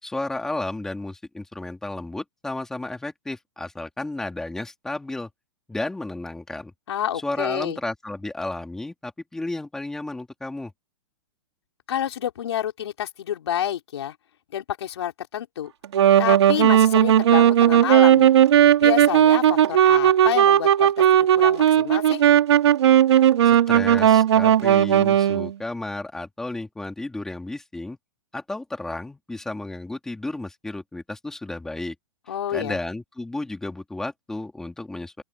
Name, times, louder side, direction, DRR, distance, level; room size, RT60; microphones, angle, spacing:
voice 1, 0.0-5.3 5.7-6.7 7.2-10.7 23.4-28.0 28.3-31.9 32.5-35.2, left 2 dB, 5° left, 2.7 m, -32 dB
voice 2, 6.9-7.8 11.9-14.1 14.5-15.7 16.2-18.3 18.8-22.2 32.3-32.8, left 10 dB, 70° left, 4.2 m, -29 dB
Wind instrument woodwind instrument, 15.8-25.5, right 10 dB, 70° right, 2.6 m, -16 dB
open air
hypercardioid pair, 175°, 15 cm